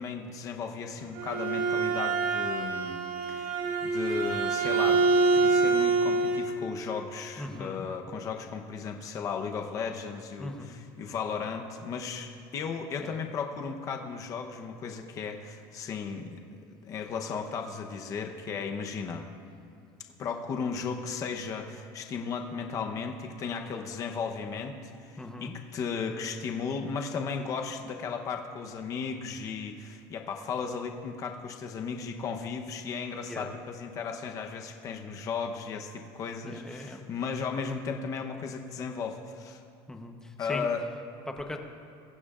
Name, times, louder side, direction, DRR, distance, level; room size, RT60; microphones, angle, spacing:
voice 1, 0.0-3.0 3.3-5.0 5.3-19.3 20.2-39.6 40.4-40.8, left 5 dB, 35° left, 3 dB, 0.9 m, -35 dB
Bowed string instrument, 1.0-6.5, right 3 dB, 85° right, 3.6 m, -26 dB
voice 2, 7.4-7.9 10.4-10.8 13.0-13.2 25.2-25.5 33.2-33.5 36.4-37.0 39.9-40.6 41.3-41.6, left 1 dB, 5° left, 3 dB, 0.9 m, -39 dB
22.5 x 15.5 x 2.5 m, 2.5 s
cardioid pair, 160°, 10 cm